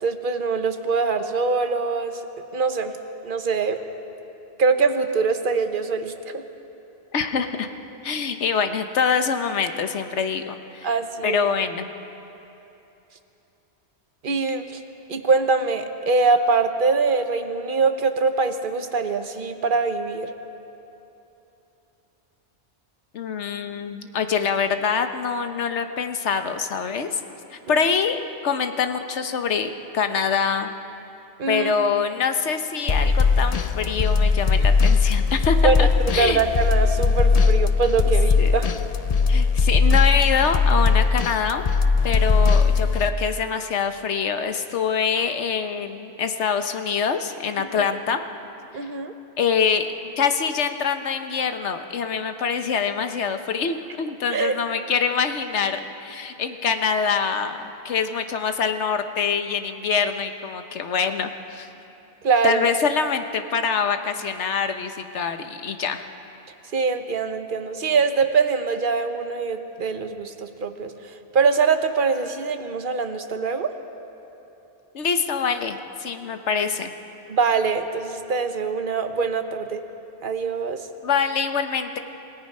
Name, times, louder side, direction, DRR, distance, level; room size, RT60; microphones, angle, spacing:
voice 1, 0.0-2.2 2.5-2.9 3.2-3.8 4.6-6.4 10.8-11.5 14.2-14.8 15.1-20.3 31.4-31.7 35.6-35.9 36.2-38.7 47.6-47.9 48.7-49.1 54.3-54.6 62.2-62.7 66.7-70.9 71.3-73.7 77.3-79.8 80.2-80.8, right 4 dB, 50° right, 7 dB, 1.2 m, -23 dB
voice 2, 7.1-7.7 8.0-10.9 11.2-11.9 23.1-27.2 27.5-30.7 31.5-36.4 38.4-38.5 39.3-41.6 42.0-48.2 49.4-49.9 50.2-61.7 62.4-66.0 74.9-76.9 81.0-82.0, left 6 dB, 85° left, 7 dB, 1.3 m, -25 dB
sound 1, 32.9-43.1, left 4 dB, 45° left, 0.6 m, -19 dB
27.0 x 17.5 x 5.5 m, 3.0 s
omnidirectional pair, 1.1 m